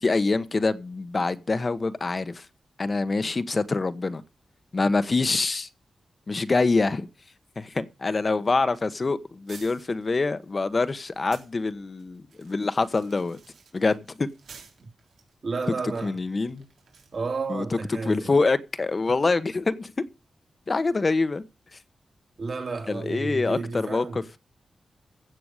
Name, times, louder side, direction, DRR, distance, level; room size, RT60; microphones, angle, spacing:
voice 1, 0.0-2.4 2.8-4.2 4.7-5.7 6.3-7.1 7.6-13.4 13.7-14.3 16.0-16.6 17.5-17.6 18.0-19.9 20.7-21.4 22.9-24.4, left 3 dB, 45° left, 1.1 m, -25 dB
sound 1, 9.5-11.5 12.0-17.2, right 5 dB, 90° right, 3.9 m, -52 dB
voice 2, 15.4-16.2 17.1-18.3 22.4-24.2, right 4 dB, 60° right, 3.6 m, -32 dB
15.5 x 6.9 x 6.5 m
cardioid pair, 55°, 0 cm